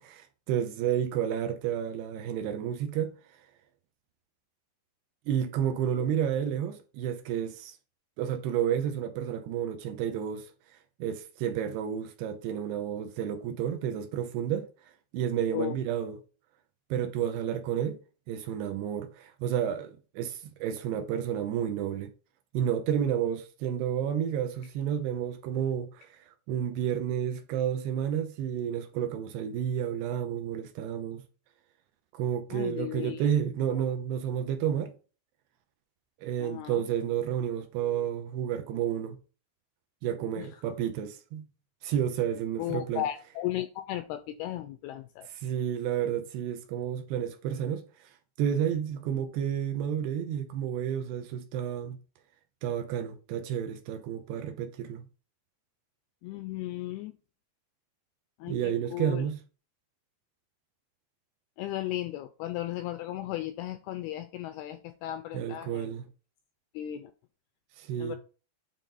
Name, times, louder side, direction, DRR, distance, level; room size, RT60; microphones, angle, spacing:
voice 1, 0.0-3.1 5.3-7.7 8.2-10.5 11.0-14.7 15.1-16.2 16.9-18.0 18.3-22.1 22.5-31.2 32.1-34.9 36.2-39.2 40.0-41.5 41.8-43.0 45.4-48.1 48.4-52.0 52.6-55.1 58.5-59.4 65.3-66.0 67.8-68.2, right 9 dB, 80° right, 2.6 m, -31 dB
voice 2, 32.5-33.3 36.4-36.9 40.4-40.6 42.6-45.4 56.2-57.1 58.4-59.3 61.6-65.9 66.7-67.1 68.0-68.2, left 14 dB, 85° left, 2.2 m, -36 dB
9.3 x 3.6 x 4.0 m
omnidirectional pair, 5.0 m